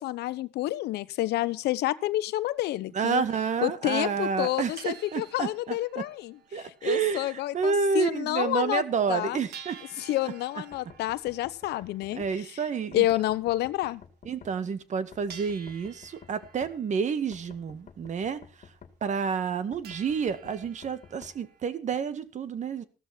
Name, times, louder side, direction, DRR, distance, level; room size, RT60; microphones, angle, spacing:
voice 1, 0.0-3.2 3.6-8.8 9.1-9.4 10.0-12.6 12.9-14.0, left 15 dB, 75° left, 0.9 m, -29 dB
sound 1, 2.2-2.3 2.9-3.0 3.2-3.3 4.0-4.1 4.4-7.5 7.8-7.9 8.3-8.4 8.7-8.8 9.5-14.1 14.7-14.9 15.3-18.3 18.7-18.8 19.1-19.6 19.8-21.7, right 7 dB, 70° right, 2.6 m, -51 dB
voice 2, 2.9-6.0 6.5-9.8 12.1-13.0 14.3-18.4 19.0-22.8, right 6 dB, 45° right, 1.8 m, -29 dB
sound 2, 10.7-12.3 12.9-14.5 15.1-16.7 17.3-18.9 19.7-21.3, left 7 dB, 45° left, 2.3 m, -51 dB
15.5 x 13.5 x 4.4 m
cardioid pair, 110°, 17 cm